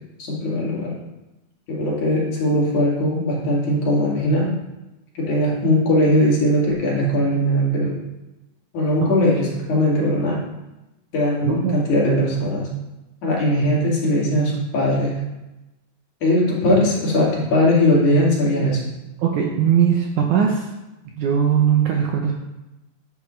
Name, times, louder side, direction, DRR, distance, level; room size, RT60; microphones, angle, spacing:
voice 1, 0.2-0.9 1.7-4.5 5.2-8.0 8.7-10.4 11.1-12.7 13.2-15.2 16.2-18.8, left 1 dB, 55° left, -5 dB, 3.6 m, -19 dB
voice 2, 11.4-11.8 19.2-20.7 21.2-22.3, right 8 dB, 75° right, 0 dB, 1.9 m, -19 dB
10.0 x 8.5 x 3.2 m, 0.98 s
omnidirectional pair, 4.3 m